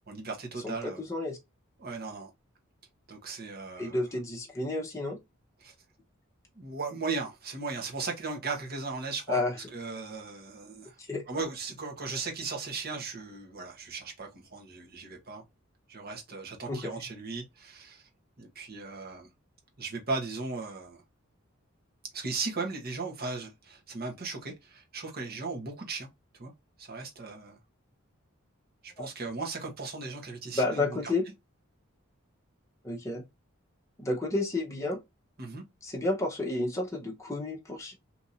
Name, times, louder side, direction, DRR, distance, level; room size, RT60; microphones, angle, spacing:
voice 1, 0.1-1.0 1.8-2.3 3.1-4.0 5.6-5.7 6.6-9.4 9.7-11.0 11.3-15.4 15.9-18.0 18.4-19.3 19.8-21.0 22.1-26.1 26.4-26.5 26.8-27.6 28.8-31.1 35.4-35.6, right 3 dB, 45° right, 1.1 m, -37 dB
voice 2, 0.6-1.4 3.8-5.2 9.3-9.6 11.0-11.2 16.7-16.9 29.0-29.1 30.5-31.2 32.8-33.2 34.0-35.0 35.8-37.9, left 2 dB, 15° left, 0.8 m, -31 dB
2.9 x 2.6 x 3.9 m
head